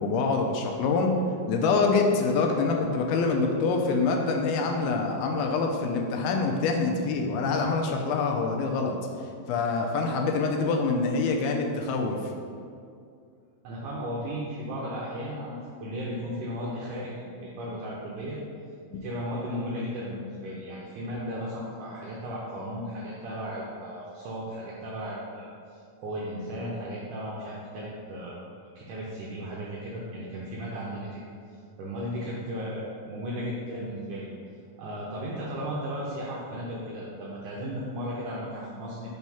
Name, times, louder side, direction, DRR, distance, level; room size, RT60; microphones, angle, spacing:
voice 1, 0.0-1.1 1.5-9.0 9.5-12.2, left 4 dB, 80° left, 2 dB, 2.4 m, -25 dB
voice 2, 13.6-18.4 18.9-28.4 28.7-31.2 31.5-34.3 34.8-39.1, equal, 80° right, -5 dB, 1.8 m, -35 dB
5.4 x 4.6 x 5.5 m, 2.4 s
omnidirectional pair, 4.5 m